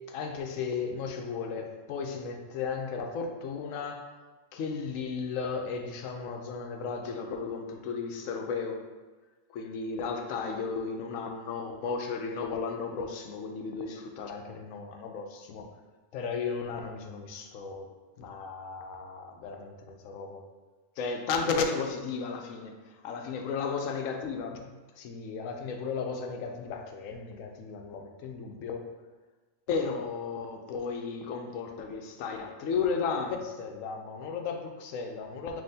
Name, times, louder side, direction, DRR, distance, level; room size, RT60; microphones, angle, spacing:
voice 1, 0.1-4.1 4.5-8.8 9.5-15.7 16.1-17.9 18.2-20.4 21.0-24.5 25.0-28.9 29.7-35.6, left 5 dB, 85° left, 4 dB, 1.0 m, -34 dB
5.4 x 3.0 x 2.7 m, 1.3 s
omnidirectional pair, 1.3 m